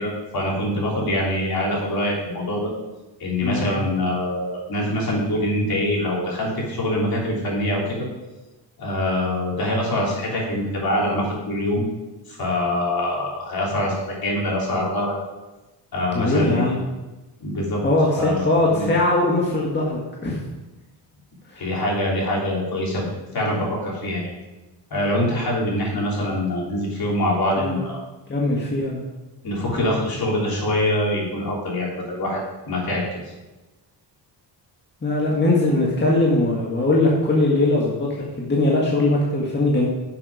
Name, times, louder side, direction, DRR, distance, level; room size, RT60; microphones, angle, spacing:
voice 1, 0.0-2.7 3.2-8.1 8.8-11.8 12.3-15.1 15.9-16.7 17.4-17.8 18.1-18.9 21.6-23.0 23.3-24.3 24.9-28.0 29.4-32.4 32.7-33.0, left 1 dB, 55° left, -3 dB, 3.8 m, -24 dB
voice 2, 16.1-16.7 17.8-20.4 21.5-21.6 27.6-27.8 28.3-29.0 29.8-30.0 35.0-39.9, left 2 dB, 25° left, -3 dB, 1.8 m, -20 dB
10.5 x 7.3 x 5.0 m, 1.1 s
cardioid pair, 125°, 43 cm